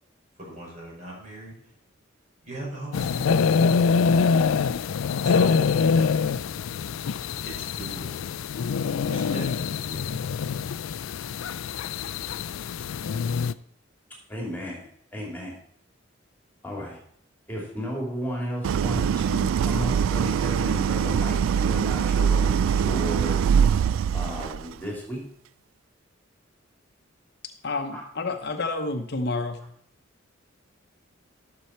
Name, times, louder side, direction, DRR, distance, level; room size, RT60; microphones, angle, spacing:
voice 1, 0.4-1.5 2.4-3.4 5.2-5.7 7.4-8.2 9.1-10.0, right 2 dB, 35° right, -4 dB, 5.4 m, -39 dB
sound 1, 2.9-13.5, left 5 dB, 85° left, 0.4 m, -25 dB
voice 2, 14.3-15.6 16.6-17.0 17.5-23.4 24.1-25.2 27.9-28.0, equal, 10° left, -2 dB, 2.8 m, -34 dB
Idling, 18.6-24.7, right 7 dB, 80° right, 0.3 m, -23 dB
voice 3, 27.6-29.6, left 3 dB, 55° left, 6 dB, 0.8 m, -29 dB
13.0 x 7.0 x 4.3 m, 0.66 s
head